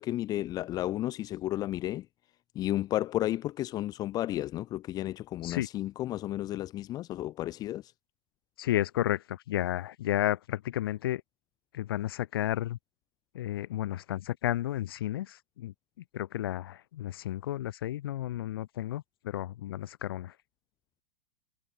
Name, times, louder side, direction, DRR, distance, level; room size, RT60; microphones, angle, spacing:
voice 1, 0.0-2.1 2.5-7.9, left 14 dB, 30° left, 0.9 m, -32 dB
voice 2, 8.6-11.2 11.7-12.8 13.3-15.7 16.1-20.3, left 13 dB, 75° left, 0.5 m, -32 dB
hypercardioid pair, 125°, 12 cm